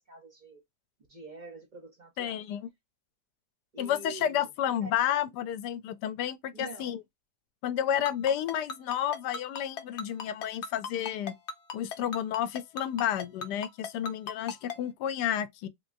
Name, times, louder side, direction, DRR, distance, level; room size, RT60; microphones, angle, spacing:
voice 1, 0.1-0.6 1.1-2.4 3.7-4.5 4.8-4.9 6.5-7.0, right 2 dB, 45° right, 0.5 m, -46 dB
voice 2, 2.2-2.7 3.8-7.0 7.6-11.3 11.7-15.7, left 10 dB, 75° left, 1.1 m, -31 dB
Ringtone, 8.1-14.8, left 5 dB, 55° left, 0.8 m, -36 dB
3.7 x 2.9 x 2.5 m
omnidirectional pair, 1.8 m